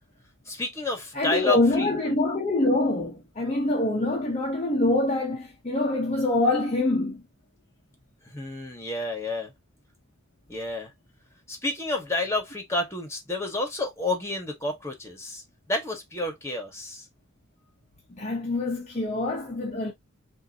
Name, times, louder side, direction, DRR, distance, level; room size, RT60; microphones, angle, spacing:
voice 1, 0.5-1.9 8.3-9.5 10.5-10.9 11.5-17.0, left 2 dB, 15° left, 1.5 m, -30 dB
voice 2, 1.1-7.2 18.1-19.9, left 2 dB, 30° left, 0.9 m, -25 dB
5.6 x 2.8 x 2.8 m
head